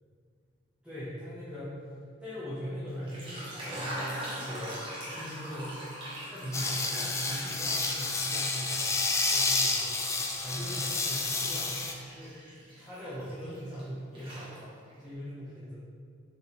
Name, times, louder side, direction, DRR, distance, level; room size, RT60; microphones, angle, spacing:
voice 1, 0.8-1.9 2.2-5.8 6.3-9.0 9.3-10.1 10.4-11.8 12.1-12.4 12.7-15.8, equal, 5° right, -12 dB, 1.4 m, -40 dB
sound 1, 2.9-9.3 9.7-13.8 14.1-15.0, equal, 25° right, 1.7 m, -42 dB
sound 2, 6.5-11.9, left 3 dB, 15° left, 0.4 m, -30 dB
7.8 x 4.0 x 4.1 m, 2.2 s
head